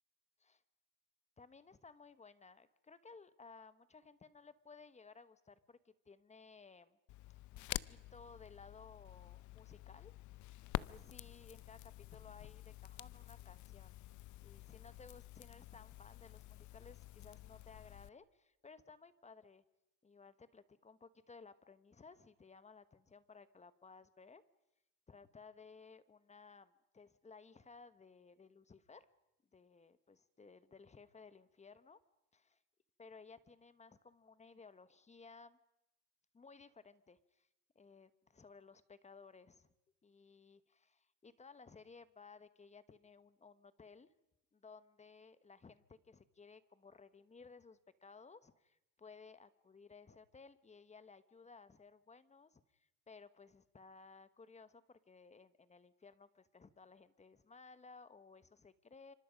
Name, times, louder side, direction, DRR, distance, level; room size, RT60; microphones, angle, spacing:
voice 1, 1.4-7.0 7.5-10.1 10.4-14.0 14.4-19.6 20.0-24.4 25.1-29.1 29.5-32.0 32.3-32.6 33.0-35.6 36.3-37.5 37.7-39.7 40.0-44.1 44.5-59.1, left 4 dB, 20° left, 14 dB, 1.2 m, -59 dB
Crackle, 7.1-18.1, left 16 dB, 60° left, 0.7 m, -49 dB
27.5 x 25.5 x 5.2 m, 0.91 s
cardioid pair, 105°, 33 cm